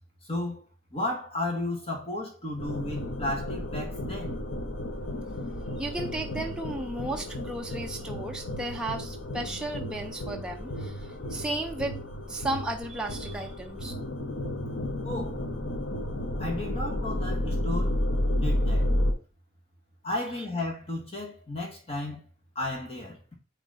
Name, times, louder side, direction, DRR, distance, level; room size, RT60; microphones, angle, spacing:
voice 1, 0.2-0.6 0.9-4.4 15.0-15.4 16.4-18.0 18.3-18.9 20.0-22.2 22.5-23.2, left 2 dB, 35° left, 1.5 m, -33 dB
sound 1, 2.6-19.1, left 1 dB, 85° left, 1.2 m, -32 dB
voice 2, 5.8-12.0 12.3-13.9, right 2 dB, 5° right, 0.4 m, -34 dB
8.9 x 3.1 x 3.9 m
head